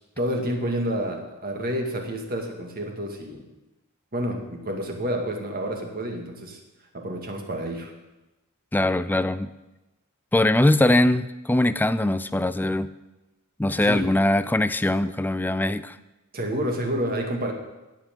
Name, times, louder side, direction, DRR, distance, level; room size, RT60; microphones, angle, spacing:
voice 1, 0.2-3.5 4.1-6.6 6.9-7.9 13.8-14.1 16.3-17.5, equal, 45° right, 2 dB, 2.1 m, -29 dB
voice 2, 8.7-9.5 10.3-12.9 13.6-16.0, left 1 dB, 10° left, 13 dB, 0.4 m, -21 dB
16.5 x 5.7 x 9.0 m, 1.0 s
head